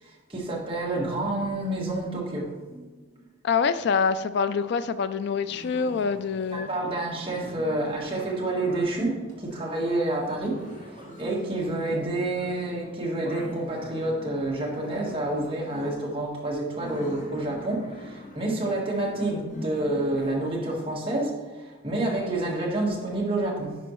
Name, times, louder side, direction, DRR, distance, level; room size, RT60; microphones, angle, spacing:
voice 1, 0.0-2.9 6.5-23.8, right 2 dB, 25° right, 1.4 m, -29 dB
voice 2, 3.4-6.7, left 5 dB, 55° left, 0.3 m, -25 dB
sound 1, 5.3-20.5, left 1 dB, 35° left, 1.0 m, -44 dB
10.0 x 5.1 x 3.1 m
head